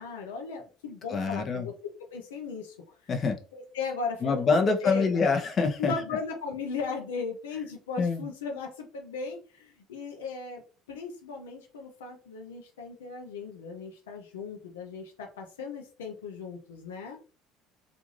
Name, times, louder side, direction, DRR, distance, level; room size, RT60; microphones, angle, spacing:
voice 1, 0.0-2.8 3.5-5.1 5.8-10.6 10.9-17.2, left 5 dB, 90° left, 2 dB, 0.5 m, -37 dB
voice 2, 1.1-1.7 3.1-3.4 4.2-5.9 8.0-8.3, left 4 dB, 45° left, 4 dB, 0.7 m, -25 dB
2.5 x 2.3 x 3.1 m, 0.37 s
hypercardioid pair, 70°, 0 cm